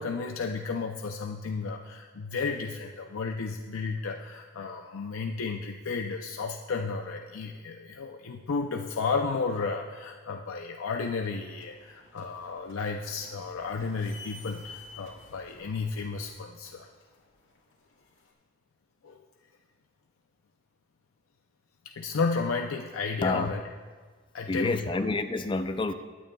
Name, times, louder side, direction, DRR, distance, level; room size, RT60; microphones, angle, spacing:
voice 1, 0.0-16.9 19.0-19.2 21.9-23.6 24.3-24.9, left 4 dB, 85° left, 3 dB, 0.5 m, -33 dB
sound 1, 10.9-18.3, left 4 dB, 60° left, 2.4 m, -52 dB
voice 2, 24.5-25.9, left 2 dB, 25° left, 9 dB, 0.4 m, -28 dB
21.0 x 9.2 x 2.3 m, 1.5 s
head